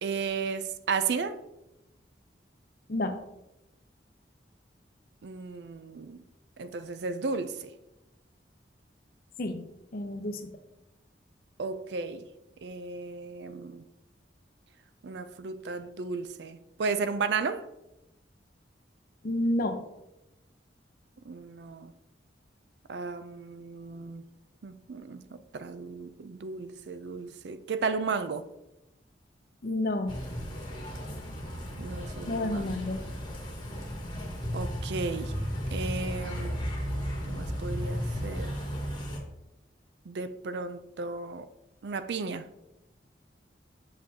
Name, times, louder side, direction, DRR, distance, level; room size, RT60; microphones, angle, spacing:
voice 1, 0.0-1.4 5.2-6.2 6.6-7.7 11.6-12.3 12.6-13.8 15.0-17.7 21.2-21.9 22.9-24.2 24.6-28.5 31.8-32.8 34.5-35.3 35.7-36.7 37.3-38.5 40.1-41.5 41.8-42.5, right 4 dB, 65° right, 0.4 m, -34 dB
voice 2, 9.9-10.5 19.2-19.8 29.6-30.1 32.3-33.0, left 1 dB, 50° left, 0.7 m, -29 dB
sound 1, 30.1-39.2, equal, 25° left, 1.3 m, -34 dB
7.5 x 6.0 x 2.8 m
head